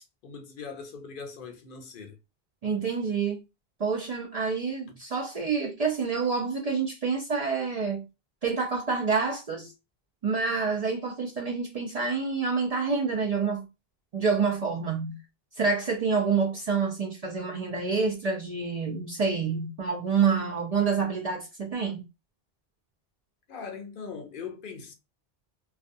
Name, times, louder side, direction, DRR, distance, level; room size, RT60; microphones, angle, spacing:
voice 1, 0.2-2.2 23.5-24.9, left 5 dB, 65° left, 0.7 m, -40 dB
voice 2, 2.6-3.4 3.8-8.0 8.4-9.7 10.2-13.6 14.1-15.2 15.6-22.0, right 5 dB, 50° right, 0.5 m, -27 dB
2.4 x 2.2 x 2.5 m
omnidirectional pair, 1.0 m